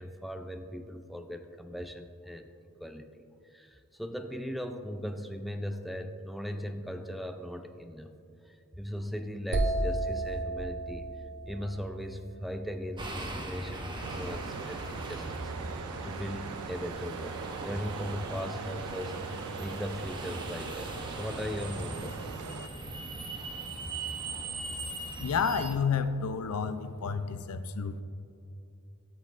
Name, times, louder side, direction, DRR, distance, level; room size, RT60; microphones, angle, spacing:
voice 1, 0.0-2.5 2.8-3.2 3.5-8.1 8.5-11.1 11.5-22.2 25.2-25.3, equal, ahead, 7 dB, 0.3 m, -39 dB
sound 1, 9.5-13.3, right 1 dB, 60° right, 0.7 m, -33 dB
sound 2, 13.0-25.7, right 2 dB, 20° right, 0.8 m, -40 dB
sound 3, 14.0-22.7, right 6 dB, 90° right, 0.4 m, -41 dB
voice 2, 25.2-28.0, left 6 dB, 85° left, 11 dB, 0.5 m, -30 dB
13.0 x 7.4 x 2.5 m, 2.6 s
head